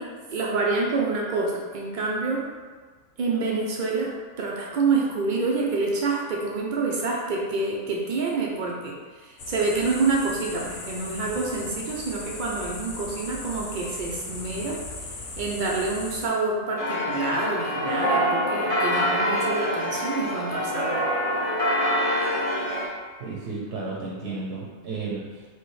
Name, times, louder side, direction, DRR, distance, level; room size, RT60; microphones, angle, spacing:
voice 1, 0.0-2.4 3.2-4.1 4.4-14.8 15.4-21.0, right 3 dB, 85° right, -3 dB, 0.4 m, -27 dB
sound 1, 9.4-16.3, left 2 dB, 65° left, 1.0 m, -37 dB
sound 2, 16.8-22.9, equal, 35° left, 0.6 m, -25 dB
voice 2, 23.2-25.5, right 3 dB, 60° right, -3 dB, 0.8 m, -33 dB
4.5 x 2.9 x 3.1 m, 1.5 s
omnidirectional pair, 1.5 m